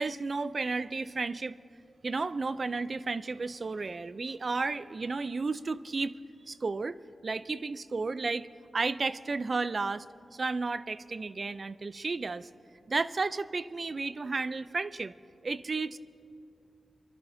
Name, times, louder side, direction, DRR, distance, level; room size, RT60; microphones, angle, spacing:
voice 1, 0.0-1.6 2.0-6.2 6.5-7.0 7.2-8.5 8.7-10.1 10.3-12.5 12.9-15.1 15.4-16.0, right 3 dB, 40° right, 15 dB, 0.3 m, -32 dB
29.0 x 12.0 x 2.6 m, 2.7 s
wide cardioid pair, 140°, 0 cm